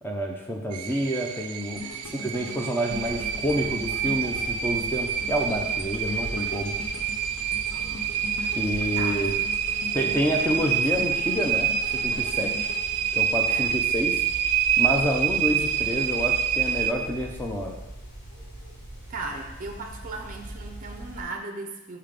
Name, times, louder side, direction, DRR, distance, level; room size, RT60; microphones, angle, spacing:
voice 1, 0.0-6.7 8.5-9.3 9.9-12.7 13.1-14.2 14.8-17.8, equal, 10° left, 1 dB, 0.5 m, -28 dB
sound 1, 0.7-16.9, right 8 dB, 90° right, 0.4 m, -27 dB
sound 2, 1.8-13.9 14.4-14.5, left 3 dB, 80° left, 0.8 m, -41 dB
sound 3, 2.9-21.2, right 1 dB, 50° left, 1.5 m, -41 dB
voice 2, 7.7-8.1 9.0-9.3 13.5-13.7 19.1-22.0, right 3 dB, 40° right, 4 dB, 0.5 m, -37 dB
5.6 x 3.5 x 5.1 m, 0.98 s
head